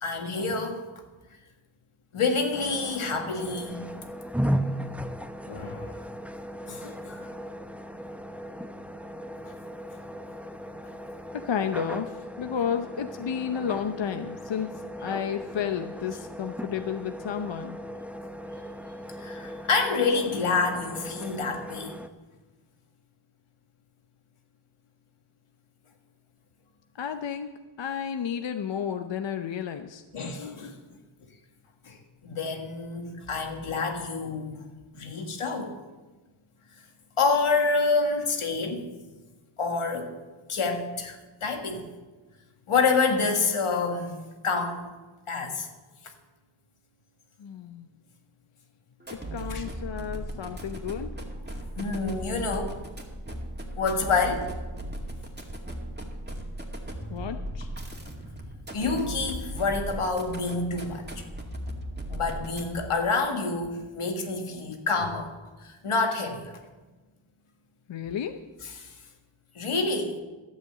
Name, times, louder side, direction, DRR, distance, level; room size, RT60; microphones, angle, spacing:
voice 1, 0.0-0.8 2.1-3.9 5.5-5.9 6.7-7.3 9.4-9.5 19.2-22.0 30.1-30.7 31.9-32.0 32.2-34.6 34.9-35.7 37.2-38.9 39.6-40.2 40.5-41.9 42.7-44.2 44.4-44.9 45.3-45.7 49.5-49.6 51.5-52.8 53.8-54.5 58.7-61.2 62.1-65.3 65.6-66.5 68.8-68.9 69.6-70.2, left 4 dB, 85° left, 4 dB, 1.8 m, -28 dB
sound 1, 2.5-22.1, equal, 5° right, 0.6 m, -37 dB
voice 2, 11.3-17.8 27.0-27.5 27.8-30.0 47.4-47.9 49.3-51.1 57.1-57.7 67.9-68.4, left 8 dB, 65° left, 7 dB, 0.7 m, -32 dB
sound 2, 49.0-63.0, right 1 dB, 20° right, 2.2 m, -37 dB
12.0 x 8.1 x 7.5 m, 1.2 s
wide cardioid pair, 75°, 49 cm